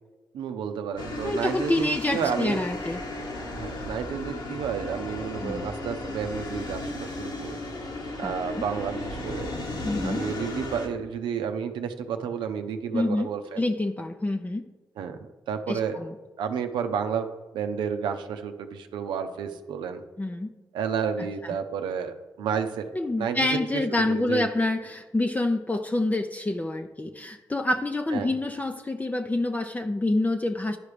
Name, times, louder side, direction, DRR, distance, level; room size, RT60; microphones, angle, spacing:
voice 1, 0.3-2.6 3.5-7.6 8.2-9.5 10.0-13.6 15.0-16.0 16.4-17.3 17.5-20.0 20.7-22.9 23.2-24.5 28.1-28.3, right 7 dB, 85° right, 7 dB, 0.7 m, -31 dB
sound 1, 1.0-10.9, left 2 dB, 70° left, 1.6 m, -35 dB
voice 2, 1.2-3.0 5.4-5.6 8.2-8.3 9.8-10.2 12.9-13.3 13.6-14.6 15.7-16.1 20.2-20.5 21.4-21.5 22.9-30.8, left 2 dB, 20° left, 5 dB, 0.6 m, -27 dB
11.0 x 4.8 x 5.0 m, 1.3 s
supercardioid pair, 45°, 8 cm